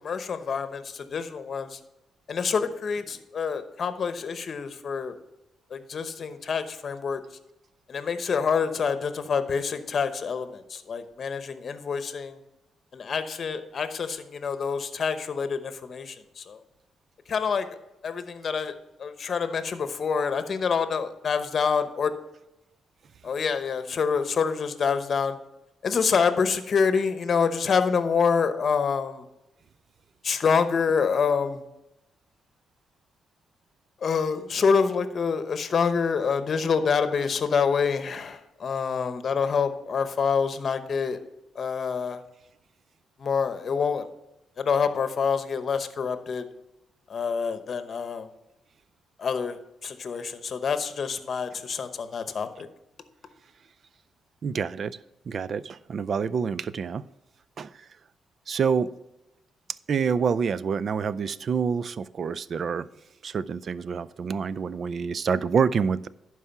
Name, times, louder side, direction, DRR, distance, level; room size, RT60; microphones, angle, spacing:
voice 1, 0.0-1.8 2.3-5.1 5.7-7.2 7.9-12.4 12.9-16.6 17.3-17.8 18.0-18.7 19.0-22.1 23.2-25.4 25.8-29.2 30.2-31.6 34.0-41.2 41.5-42.2 43.2-44.1 44.6-46.5 47.1-48.3 49.2-52.7, left 6 dB, 50° left, 10 dB, 0.9 m, -26 dB
voice 2, 54.4-55.0 55.3-57.0 57.6-57.9 58.5-58.9 59.9-62.9 63.2-66.1, right 6 dB, 50° right, 18 dB, 0.4 m, -27 dB
11.5 x 4.7 x 5.8 m, 0.90 s
cardioid pair, 90°, 0 cm